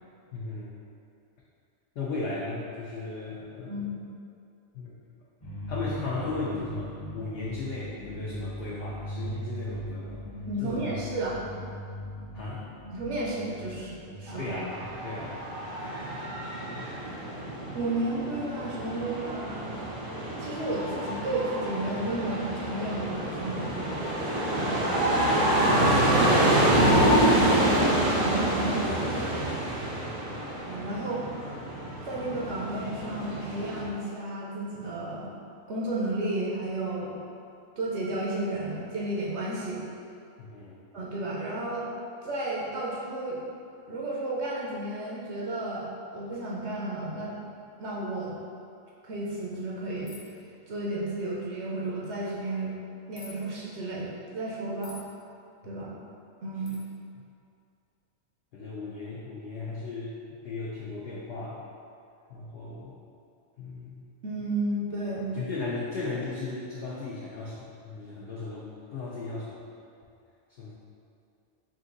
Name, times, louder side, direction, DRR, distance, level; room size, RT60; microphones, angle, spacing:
voice 1, 0.3-0.7 2.0-3.8 4.7-4.9 5.7-10.2 10.6-11.0 12.3-12.7 14.4-15.5 30.0-30.4 40.4-40.8 55.6-56.0 56.7-56.8 58.5-60.1 60.4-61.6 62.3-63.0 63.6-64.1 65.3-69.5 70.5-70.7, left 3 dB, 60° left, -6 dB, 0.7 m, -36 dB
voice 2, 3.7-4.0 10.5-11.4 12.9-14.6 17.7-19.8 20.4-23.7 24.5-25.1 25.7-29.1 30.6-31.2 32.0-35.3 35.7-37.2 37.8-39.8 40.9-41.9 42.2-43.4 43.9-47.3 47.8-48.3 49.0-50.1 50.7-52.8 53.1-55.0 55.6-55.9 56.4-56.8 64.2-65.2, right 1 dB, 70° right, -5 dB, 0.8 m, -32 dB
sound 1, 5.4-15.6, equal, 35° left, 0.9 m, -39 dB
sound 2, 14.3-33.8, right 1 dB, 85° right, 1.4 m, -27 dB
sound 3, 50.1-50.4 53.1-53.4 54.8-55.1 56.6-56.8, left 3 dB, 85° left, 1.1 m, -47 dB
3.7 x 2.6 x 3.7 m, 2.5 s
omnidirectional pair, 1.3 m